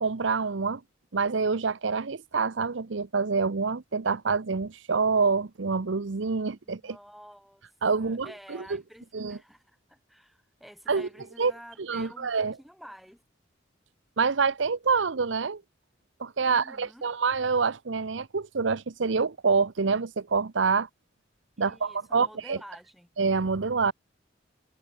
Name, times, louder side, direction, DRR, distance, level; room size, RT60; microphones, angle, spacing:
voice 1, 0.0-0.8 1.1-7.0 7.8-8.3 9.1-9.4 10.9-11.1 11.4-11.5 11.8-12.5 14.2-15.6 16.2-20.9 21.6-22.6 23.2-23.9, right 5 dB, 75° right, 0.7 m, -26 dB
voice 2, 6.6-7.7 7.9-13.2 16.5-17.1 21.6-23.1, equal, ahead, 4.9 m, -50 dB
head